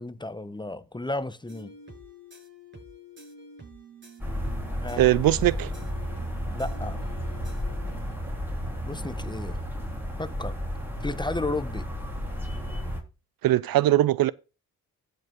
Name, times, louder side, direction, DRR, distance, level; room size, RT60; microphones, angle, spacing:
voice 1, 0.0-1.7 4.8-5.1 6.5-7.0 8.8-9.6 10.2-10.6 11.0-11.9, left 2 dB, 10° left, 0.8 m, -33 dB
sound 1, 1.5-8.2, left 1 dB, 30° right, 6.8 m, -48 dB
sound 2, 4.2-13.0, equal, 5° right, 3.6 m, -32 dB
voice 2, 5.0-5.7 13.4-14.3, right 15 dB, 60° right, 0.5 m, -21 dB
14.5 x 5.4 x 3.7 m
supercardioid pair, 60°, 39 cm